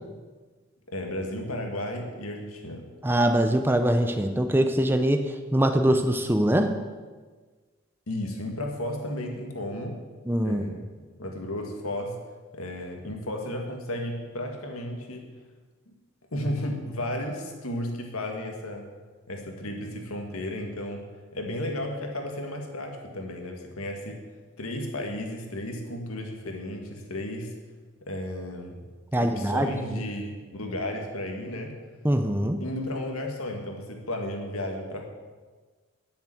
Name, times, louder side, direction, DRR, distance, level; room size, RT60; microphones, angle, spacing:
voice 1, 0.9-2.9 8.1-10.0 10.4-10.8 11.2-12.2 12.5-15.2 15.9-16.0 16.3-18.9 19.3-21.1 21.3-24.2 24.6-27.6 28.0-28.9 29.1-31.7 32.6-35.0, left 1 dB, 80° left, 3 dB, 1.9 m, -33 dB
voice 2, 3.0-5.2 5.5-6.7 10.3-10.6 29.1-30.0 32.0-32.6, right 1 dB, 10° right, 6 dB, 0.6 m, -23 dB
11.0 x 7.1 x 7.7 m, 1.4 s
head